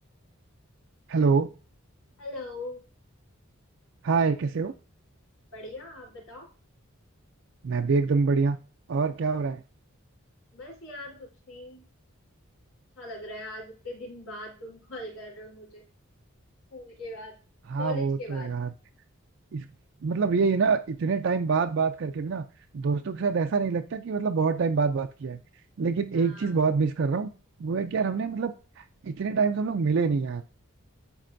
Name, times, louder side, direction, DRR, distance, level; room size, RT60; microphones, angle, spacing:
voice 1, 1.1-1.5 4.0-4.7 7.6-8.6 8.9-9.6 17.7-18.7 19.5-19.7 20.0-22.4 22.7-25.4 25.8-27.3 27.6-30.4, right 5 dB, 60° right, 6 dB, 0.4 m, -26 dB
voice 2, 2.2-2.8 5.5-6.5 10.5-11.9 13.0-15.8 16.7-17.3 17.8-18.5 26.1-26.5, left 2 dB, 75° left, -3 dB, 3.7 m, -40 dB
12.0 x 4.2 x 2.6 m, 0.36 s
head